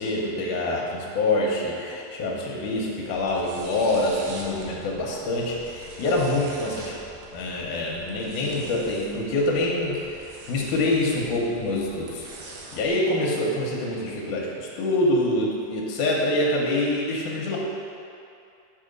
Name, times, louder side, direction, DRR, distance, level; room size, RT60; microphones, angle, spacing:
voice 1, 0.0-6.8 7.3-12.3 12.7-17.6, left 2 dB, 85° left, -3 dB, 2.4 m, -25 dB
sound 1, 3.1-12.9, right 2 dB, 75° right, 2.1 m, -44 dB
7.1 x 4.9 x 5.2 m, 2.6 s
omnidirectional pair, 3.5 m